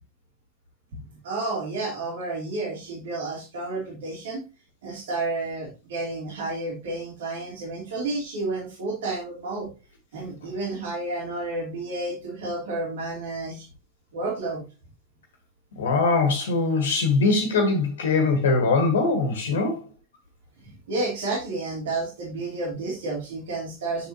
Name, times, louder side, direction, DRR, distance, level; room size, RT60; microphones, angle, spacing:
voice 1, 1.2-4.4 4.8-9.7 10.1-13.7 14.1-14.6 20.6-24.1, right 2 dB, 60° right, 3.3 m, -31 dB
voice 2, 15.8-19.9, left 3 dB, 60° left, 1.6 m, -22 dB
8.2 x 6.5 x 2.8 m
figure-of-eight pair, 90°, 0 cm